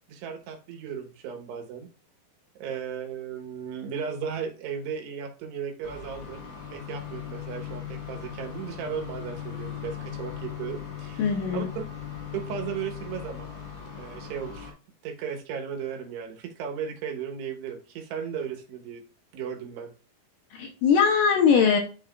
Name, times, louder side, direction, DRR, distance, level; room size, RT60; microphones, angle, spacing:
voice 1, 0.1-1.9 2.6-6.4 6.7-11.9 12.3-13.5 14.0-14.7 15.0-19.0 19.3-19.9, right 7 dB, 90° right, 3 dB, 3.3 m, -35 dB
sound 1, 5.8-14.7, left 9 dB, 50° left, 2.3 m, -39 dB
voice 2, 11.2-11.7 20.5-21.8, left 6 dB, 75° left, 3 dB, 2.0 m, -21 dB
10.0 x 5.8 x 2.4 m, 0.37 s
omnidirectional pair, 4.6 m